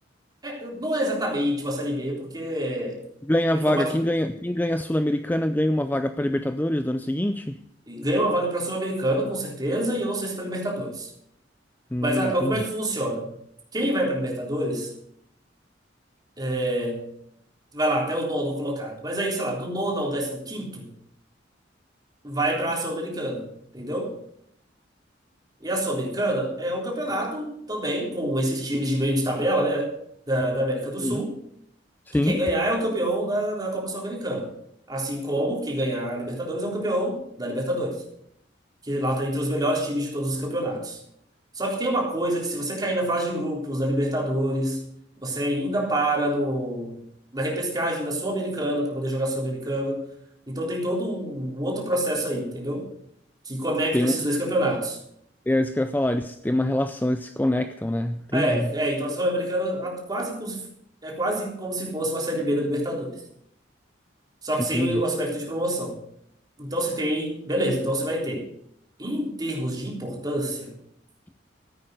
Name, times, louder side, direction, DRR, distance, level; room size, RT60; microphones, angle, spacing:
voice 1, 0.4-3.0 3.7-3.9 7.9-11.1 12.0-13.3 13.7-14.9 16.4-17.0 17.7-20.9 22.2-23.5 23.7-24.1 25.6-29.9 30.3-31.4 32.1-34.5 34.9-38.0 38.8-41.0 41.6-44.8 45.2-47.0 47.3-50.0 50.5-52.9 53.5-55.0 58.3-60.6 61.0-63.2 64.4-66.0 66.6-68.5 69.0-70.7, right 1 dB, 20° right, -1 dB, 3.6 m, -27 dB
voice 2, 3.2-7.6 11.9-12.6 31.0-31.2 32.1-32.4 53.9-54.1 55.5-58.7 64.7-65.0, left 1 dB, 10° left, 9 dB, 0.4 m, -24 dB
14.5 x 8.8 x 6.4 m, 0.72 s
head